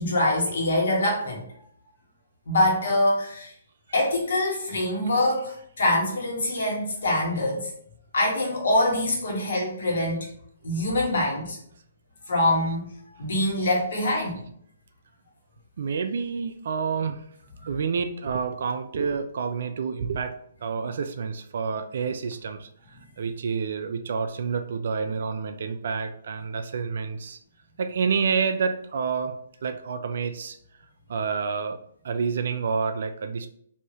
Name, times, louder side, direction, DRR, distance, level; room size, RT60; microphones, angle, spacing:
voice 1, 0.0-1.4 2.5-3.5 3.9-7.7 8.1-10.3 10.6-11.6 12.3-12.9 13.2-14.4, left 1 dB, 70° left, -3 dB, 1.3 m, -24 dB
voice 2, 5.0-5.4 13.6-13.7 15.8-17.2 17.7-20.3 20.6-27.4 27.8-29.3 29.6-30.6 31.1-31.8 32.0-33.5, right 5 dB, 65° right, 8 dB, 0.3 m, -29 dB
3.3 x 2.6 x 2.8 m, 0.66 s
hypercardioid pair, 140°, 0 cm